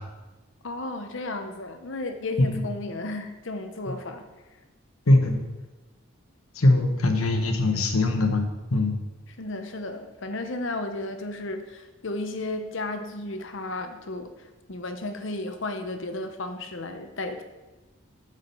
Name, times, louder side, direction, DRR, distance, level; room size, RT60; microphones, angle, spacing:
voice 1, 0.6-4.3 9.3-17.4, left 2 dB, 60° left, 7 dB, 0.8 m, -34 dB
voice 2, 5.1-5.4 6.6-8.4 8.7-8.9, left 2 dB, 85° left, 5 dB, 1.1 m, -21 dB
8.3 x 5.0 x 5.4 m, 1.1 s
head